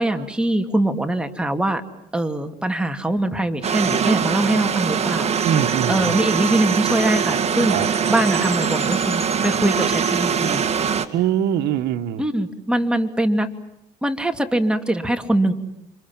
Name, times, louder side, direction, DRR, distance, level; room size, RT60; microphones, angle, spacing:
voice 1, 0.0-1.8 2.1-5.4 5.9-10.6 12.2-13.5 14.0-15.5, right 1 dB, 5° right, 5 dB, 2.7 m, -22 dB
sound 1, 3.6-11.1, right 7 dB, 40° right, 2.3 m, -22 dB
voice 2, 5.4-6.2 7.7-7.9 11.1-12.3, right 10 dB, 80° right, 7 dB, 1.5 m, -23 dB
Chime, 6.4-10.9, left 3 dB, 20° left, 1.5 m, -39 dB
30.0 x 26.0 x 7.4 m, 0.81 s
cardioid pair, 110°, 17 cm